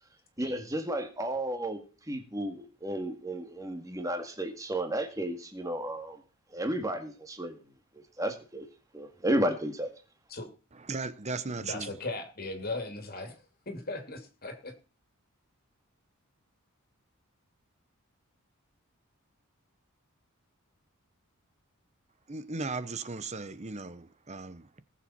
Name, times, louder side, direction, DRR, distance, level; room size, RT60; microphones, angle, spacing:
voice 1, 0.4-1.8 2.1-6.2 6.5-7.6 8.2-8.7 8.9-9.9, right 1 dB, 15° right, 1.9 m, -32 dB
voice 2, 10.9-11.9 22.3-24.8, right 3 dB, 30° right, 0.9 m, -37 dB
voice 3, 11.4-14.7, left 2 dB, 45° left, 2.6 m, -38 dB
20.0 x 7.3 x 4.4 m
head